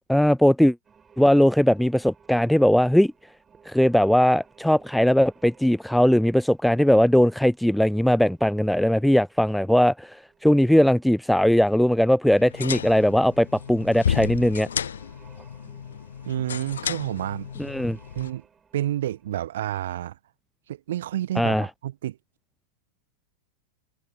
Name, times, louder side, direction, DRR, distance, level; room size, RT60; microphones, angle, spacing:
voice 1, 0.1-0.8 1.2-3.1 3.7-14.7 17.6-18.0 21.4-21.7, equal, ahead, 0.3 m, -19 dB
sound 1, 0.8-19.5, right 6 dB, 20° right, 5.8 m, -57 dB
sound 2, 12.3-18.3, left 8 dB, 65° left, 0.5 m, -32 dB
voice 2, 16.3-17.5 18.1-18.4 18.7-20.2 20.7-22.2, right 12 dB, 60° right, 1.5 m, -29 dB
figure-of-eight pair, 90°, 0 cm